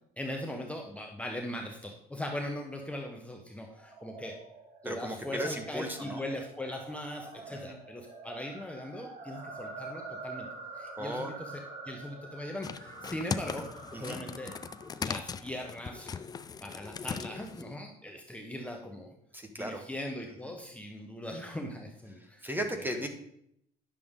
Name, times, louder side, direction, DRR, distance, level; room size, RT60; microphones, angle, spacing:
voice 1, 0.2-4.4 4.8-10.5 10.7-14.5 15.0-16.2 16.6-19.1 19.5-22.4, left 1 dB, 5° left, 1 dB, 1.0 m, -40 dB
sound 1, 3.6-16.0, right 3 dB, 65° right, 2.9 m, -47 dB
voice 2, 4.8-6.2 7.5-7.8 11.0-11.3 13.9-14.2 19.3-19.8 20.4-20.6 22.2-23.1, equal, 10° right, 6 dB, 1.2 m, -36 dB
sound 2, 12.6-17.7, left 6 dB, 25° left, 0.4 m, -39 dB
9.9 x 6.7 x 3.7 m, 0.73 s
cardioid pair, 110°, 17 cm